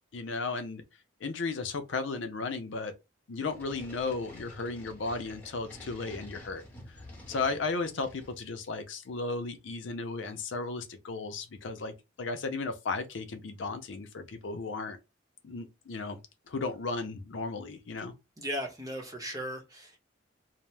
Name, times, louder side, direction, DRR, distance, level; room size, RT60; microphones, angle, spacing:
voice 1, 0.1-0.8 1.2-2.9 3.3-6.6 7.3-15.0 15.4-16.2 16.5-18.1, left 3 dB, 85° left, 0.5 m, -35 dB
sound 1, 3.5-8.4, left 1 dB, 10° left, 0.9 m, -49 dB
voice 2, 18.4-20.0, equal, 20° right, 0.7 m, -37 dB
2.7 x 2.0 x 3.2 m
head